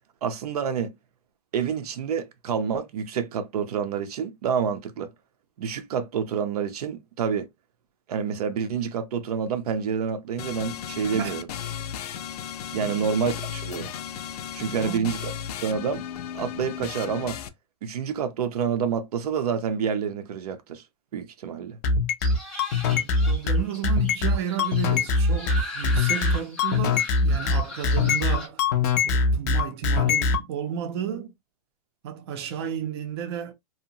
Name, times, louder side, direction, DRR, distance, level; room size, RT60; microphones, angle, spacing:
voice 1, 0.2-0.9 1.5-5.1 5.6-7.5 8.1-11.5 12.7-13.9 14.5-15.3 15.6-16.0 16.3-17.4 17.8-20.8 21.1-21.8, right 7 dB, 85° right, 0.6 m, -28 dB
sound 1, 10.4-17.5, left 9 dB, 85° left, 0.5 m, -35 dB
voice 2, 12.7-13.1 14.7-15.1 22.9-28.6 29.0-31.3 32.0-33.5, right 9 dB, 45° right, 0.5 m, -33 dB
sound 2, 21.8-30.4, left 4 dB, 30° left, 0.3 m, -22 dB
sound 3, 22.2-28.5, left 1 dB, 5° left, 0.7 m, -39 dB
2.7 x 2.0 x 2.7 m
supercardioid pair, 170°, 19 cm